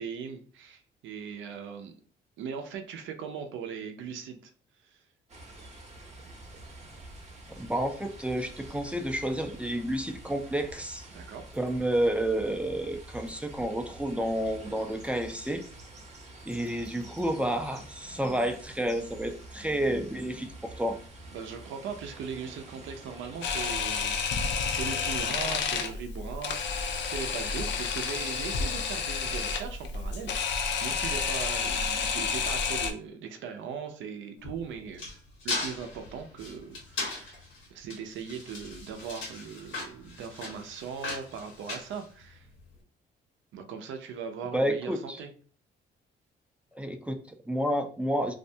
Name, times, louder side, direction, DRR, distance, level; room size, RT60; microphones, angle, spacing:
voice 1, 0.0-1.9 2.4-4.5 4.8-5.0 11.1-11.4 21.3-35.0 35.4-37.4 37.7-42.5 43.5-45.3, right 6 dB, 75° right, 6 dB, 0.5 m, -39 dB
sound 1, 5.3-23.7, right 2 dB, 35° right, 0.7 m, -47 dB
voice 2, 7.5-11.1 11.5-15.6 16.5-21.0 44.5-45.2 46.7-48.3, right 1 dB, 5° right, 6 dB, 0.3 m, -30 dB
Camera, 23.4-32.9, left 5 dB, 65° left, 0.5 m, -30 dB
sound 2, 34.4-42.6, left 3 dB, 85° left, 1.1 m, -38 dB
2.4 x 2.2 x 2.7 m, 0.43 s
cardioid pair, 90°, 20 cm